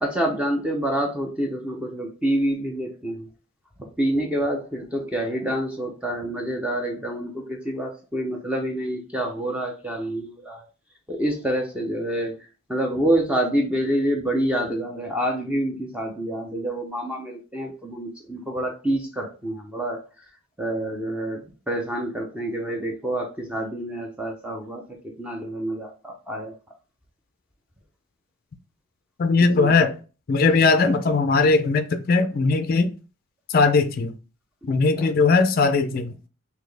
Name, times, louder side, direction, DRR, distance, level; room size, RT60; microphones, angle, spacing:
voice 1, 0.0-3.3 3.8-10.7 11.1-12.4 12.7-20.2 20.6-26.5 29.4-29.7 34.7-35.1, right 1 dB, 5° right, 0.5 m, -27 dB
voice 2, 29.2-29.9 30.3-32.9 33.5-34.1 34.6-36.1, left 4 dB, 40° left, 0.4 m, -19 dB
4.1 x 2.8 x 3.3 m
head